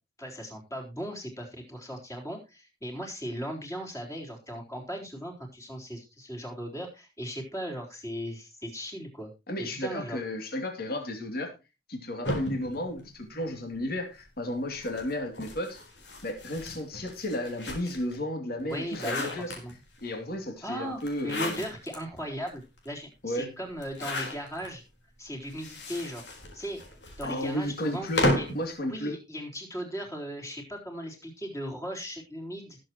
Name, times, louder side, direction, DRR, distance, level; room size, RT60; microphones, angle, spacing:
voice 1, 0.2-9.3 9.6-10.2 18.6-19.7 20.6-24.8 25.2-26.3 26.5-26.8 27.2-28.1 28.3-28.5 28.8-32.8, equal, 20° left, 1 dB, 3.9 m, -37 dB
voice 2, 9.5-11.5 11.9-15.8 16.2-19.5 20.0-21.6 23.2-23.5 24.1-24.3 27.2-28.3 28.5-29.1, left 1 dB, 60° left, 4 dB, 2.8 m, -33 dB
sound 1, 12.2-13.8 14.7-18.2 18.6-20.0 21.0-22.0 22.5-22.6 22.8-22.9 23.8-24.7 25.4-28.6, left 1 dB, 80° left, 4.1 m, -33 dB
19.5 x 7.7 x 3.0 m, 0.27 s
head